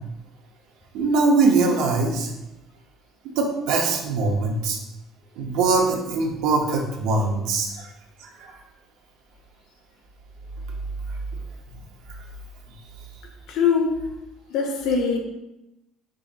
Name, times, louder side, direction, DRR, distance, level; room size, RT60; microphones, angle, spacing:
voice 1, 0.9-2.3 3.4-4.8 5.4-7.9 8.2-8.5, right 3 dB, 85° right, 1 dB, 0.8 m, -22 dB
voice 2, 13.5-14.1 14.5-15.2, left 5 dB, 60° left, 1 dB, 0.8 m, -22 dB
4.9 x 4.0 x 2.5 m, 0.90 s
cardioid pair, 175°, 0 cm